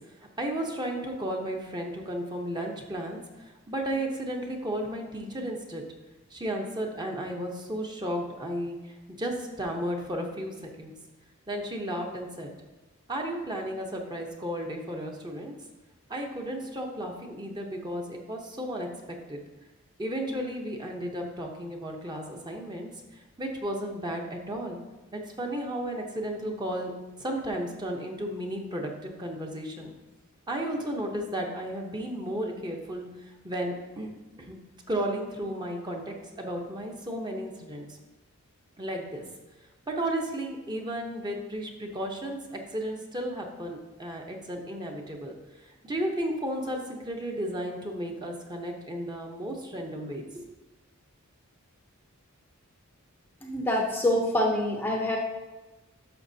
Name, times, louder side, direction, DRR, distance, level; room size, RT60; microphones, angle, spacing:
voice 1, 0.4-5.8 6.3-10.9 11.5-12.5 13.1-15.5 16.1-19.4 20.0-24.8 25.1-26.9 27.2-29.9 30.5-34.1 34.4-34.6 34.9-37.9 38.8-39.2 39.9-45.3 45.6-50.4, right 1 dB, 20° right, 1 dB, 0.9 m, -34 dB
voice 2, 53.4-55.2, left 1 dB, 10° left, 0 dB, 0.6 m, -26 dB
11.5 x 6.5 x 2.8 m, 1.1 s
head